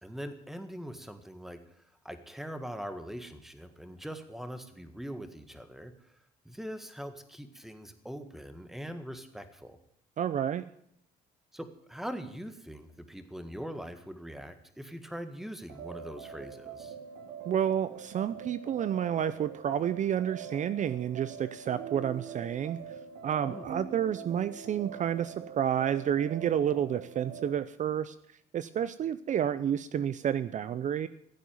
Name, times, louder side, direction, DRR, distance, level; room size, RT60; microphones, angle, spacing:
voice 1, 0.0-6.1 6.5-9.8 11.5-17.0 23.5-23.7, equal, ahead, 9 dB, 1.8 m, -42 dB
voice 2, 10.2-10.6 17.4-22.8 23.2-28.2 28.5-31.1, right 9 dB, 45° right, 14 dB, 0.7 m, -30 dB
sound 1, 15.7-27.6, right 6 dB, 80° right, 3.1 m, -44 dB
15.5 x 8.3 x 9.5 m, 0.71 s
cardioid pair, 110°, 17 cm